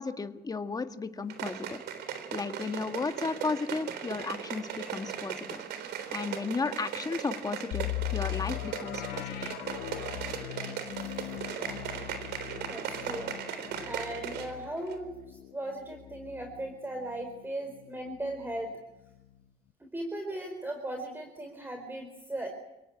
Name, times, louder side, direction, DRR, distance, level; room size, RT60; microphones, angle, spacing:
voice 1, 0.0-1.8 2.3-5.6 6.1-9.5, left 4 dB, 20° left, 7 dB, 1.8 m, -34 dB
sound 1, 1.3-14.6 14.9-15.0, right 8 dB, 75° right, 3.6 m, -38 dB
sound 2, 7.7-17.4 17.8-17.9 18.4-18.6, left 17 dB, 90° left, 0.8 m, -39 dB
voice 2, 11.4-11.8 12.7-13.3 13.8-18.7 19.9-22.5, right 1 dB, 10° right, 4 dB, 4.3 m, -37 dB
29.0 x 18.0 x 8.7 m, 0.96 s
cardioid pair, 110°, 17 cm